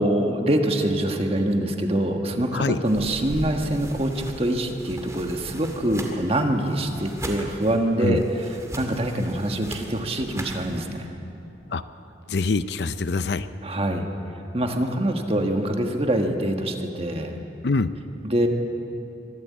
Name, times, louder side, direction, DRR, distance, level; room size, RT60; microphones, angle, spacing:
voice 1, 0.0-8.2 8.7-11.2 13.6-14.1 14.5-17.4 18.2-18.5, right 1 dB, 35° right, 4 dB, 1.5 m, -24 dB
sound 1, 2.8-10.8, right 1 dB, 15° right, 2.1 m, -38 dB
voice 2, 12.3-13.5 17.6-17.9, left 3 dB, 65° left, 13 dB, 0.6 m, -24 dB
23.5 x 13.0 x 8.5 m, 2.9 s
head